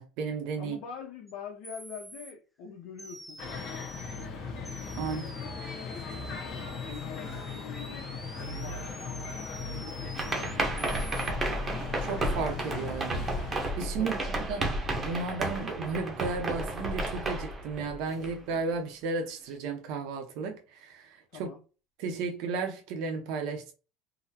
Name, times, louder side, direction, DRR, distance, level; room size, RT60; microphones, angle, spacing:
voice 1, 0.0-0.8 4.9-5.2 12.0-13.2 13.8-14.6 14.9-21.5 22.0-23.7, right 4 dB, 65° right, 0.6 m, -34 dB
voice 2, 0.6-3.9 5.0-5.6 5.9-6.3 6.9-8.1 8.4-8.9 9.7-11.3 14.0-14.5 21.3-21.6, left 6 dB, 60° left, 0.6 m, -45 dB
sound 1, 1.3-1.4 1.6-2.3 3.0-4.3 4.6-11.3, right 1 dB, ahead, 0.3 m, -47 dB
sound 2, 3.4-13.7, left 4 dB, 40° left, 1.0 m, -38 dB
sound 3, 10.1-18.6, right 2 dB, 20° right, 0.7 m, -32 dB
3.7 x 2.0 x 2.8 m
cardioid pair, 145°, 0 cm